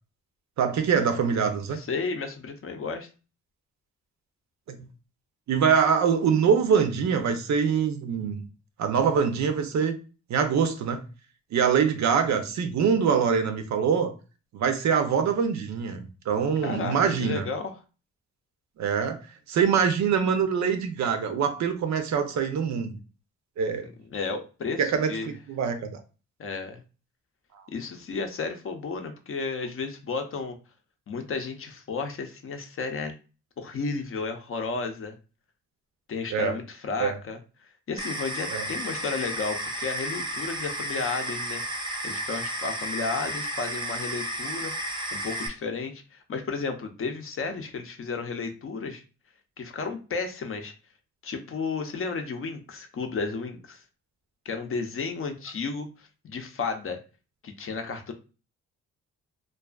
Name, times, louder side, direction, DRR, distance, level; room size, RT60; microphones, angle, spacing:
voice 1, 0.6-1.8 4.7-4.8 5.5-8.5 8.8-9.9 10.3-11.0 11.5-14.1 14.5-17.5 18.8-19.2 19.5-23.0 23.6-23.9 24.8-26.0 36.3-36.6 37.0-37.2 38.5-38.6, right 6 dB, 60° right, 7 dB, 0.6 m, -24 dB
voice 2, 1.7-3.1 16.6-17.7 24.1-25.3 26.4-26.8 27.7-30.6 31.1-33.1 33.6-35.2 36.1-37.4 37.9-41.6 42.0-49.0 49.6-50.7 51.2-53.8 54.5-57.0 57.4-58.1, left 4 dB, 45° left, 6 dB, 0.6 m, -33 dB
sound 1, 38.0-45.5, right 1 dB, 15° right, 0.6 m, -32 dB
2.4 x 2.3 x 2.3 m, 0.33 s
cardioid pair, 75°, 31 cm